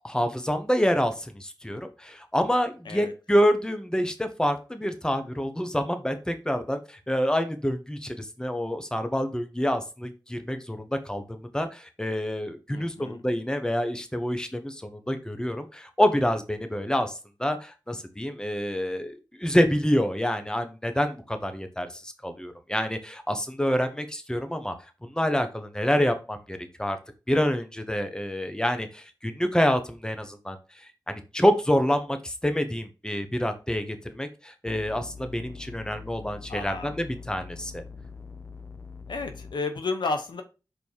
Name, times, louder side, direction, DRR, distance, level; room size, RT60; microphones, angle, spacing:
voice 1, 0.0-17.1 17.4-24.7 25.0-27.0 27.3-30.6 31.1-37.8, equal, 10° left, 8 dB, 1.2 m, -27 dB
voice 2, 12.7-13.2 36.5-37.0 39.1-40.4, left 3 dB, 85° left, 6 dB, 1.0 m, -32 dB
sound 1, 34.7-39.5, left 4 dB, 35° left, 1.0 m, -43 dB
5.4 x 4.1 x 4.7 m, 0.31 s
cardioid pair, 45°, 8 cm